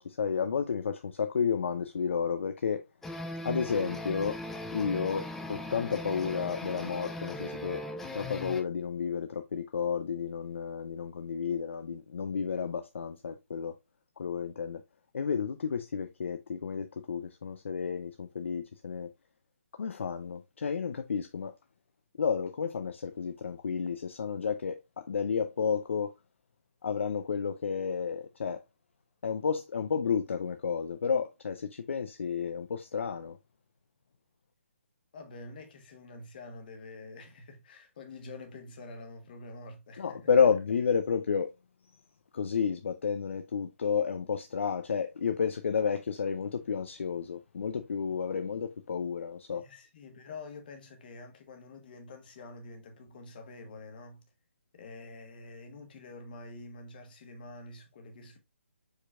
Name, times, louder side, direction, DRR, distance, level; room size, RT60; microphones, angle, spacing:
voice 1, 0.0-2.8 3.4-4.4 4.7-7.8 8.1-13.8 14.2-14.8 15.1-19.1 19.8-21.5 22.2-26.1 26.8-28.6 29.2-33.4 40.0-41.5 42.3-49.6, left 6 dB, 65° left, 0.5 m, -31 dB
sound 1, 3.0-8.6, left 1 dB, 5° left, 0.3 m, -39 dB
voice 2, 35.1-40.3 49.5-54.2 54.7-58.4, left 3 dB, 45° left, 1.3 m, -47 dB
4.8 x 4.5 x 2.3 m
figure-of-eight pair, 150°, 7 cm